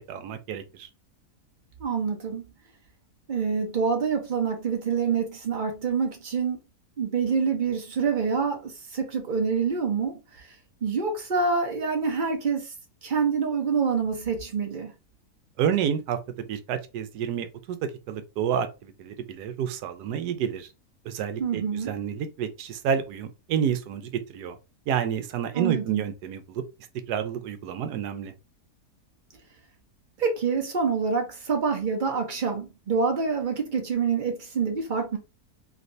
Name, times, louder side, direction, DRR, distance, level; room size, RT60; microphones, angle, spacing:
voice 1, 0.1-0.9 15.6-16.2 16.5-17.8 18.1-20.7 21.0-24.6 24.9-26.6 27.1-28.3, right 8 dB, 85° right, 1.2 m, -29 dB
voice 2, 1.8-2.5 3.3-6.6 7.0-10.4 10.8-12.7 13.0-14.9 21.4-21.9 25.5-26.0 30.2-35.2, right 5 dB, 40° right, 0.8 m, -26 dB
3.2 x 2.9 x 2.6 m
omnidirectional pair, 1.7 m